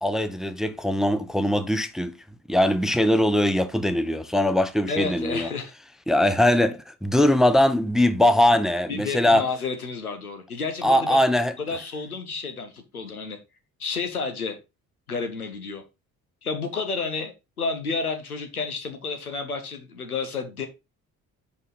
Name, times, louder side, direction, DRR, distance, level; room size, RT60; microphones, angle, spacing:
voice 1, 0.0-2.1 2.5-5.5 6.1-9.4 10.8-11.5, left 1 dB, ahead, 0.5 m, -21 dB
voice 2, 4.9-5.7 8.9-11.2 11.6-13.4 13.8-14.6 15.1-15.8 16.4-17.3 17.6-20.7, left 4 dB, 90° left, 0.8 m, -30 dB
5.2 x 5.1 x 4.0 m
figure-of-eight pair, 45°, 43 cm